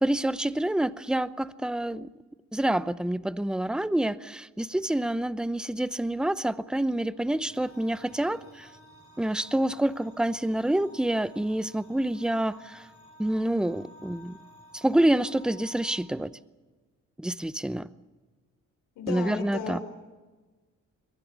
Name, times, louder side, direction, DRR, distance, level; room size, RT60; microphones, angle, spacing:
voice 1, 0.0-2.1 2.5-8.7 9.2-12.9 13.2-14.4 14.7-16.3 17.2-17.9 19.1-19.8, right 1 dB, 5° right, 0.7 m, -27 dB
sound 1, 6.9-16.0, left 1 dB, 50° left, 7.5 m, -53 dB
voice 2, 18.9-19.8, left 6 dB, 90° left, 4.5 m, -34 dB
23.5 x 19.0 x 8.3 m
cardioid pair, 90°, 30 cm